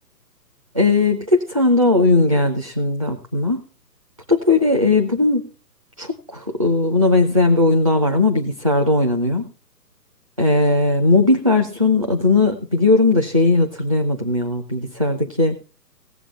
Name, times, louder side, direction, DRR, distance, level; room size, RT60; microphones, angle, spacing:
voice 1, 0.7-3.7 4.3-5.5 6.0-9.5 10.4-15.6, left 2 dB, 20° right, 4 dB, 0.5 m, -18 dB
17.0 x 7.5 x 4.1 m, 0.35 s
figure-of-eight pair, 135°, 49 cm